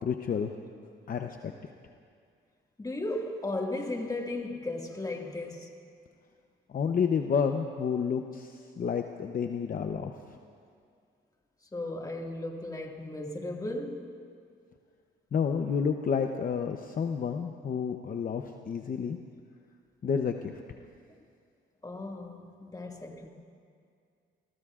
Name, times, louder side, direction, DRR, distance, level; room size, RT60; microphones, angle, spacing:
voice 1, 0.0-0.6 1.1-1.5 6.7-10.1 15.3-19.2 20.0-20.6, left 6 dB, 45° left, 0.8 m, -30 dB
voice 2, 2.8-5.7 11.7-14.2 21.8-23.3, left 2 dB, 20° left, 2.0 m, -35 dB
28.5 x 20.5 x 2.5 m
cardioid pair, 90°, 20 cm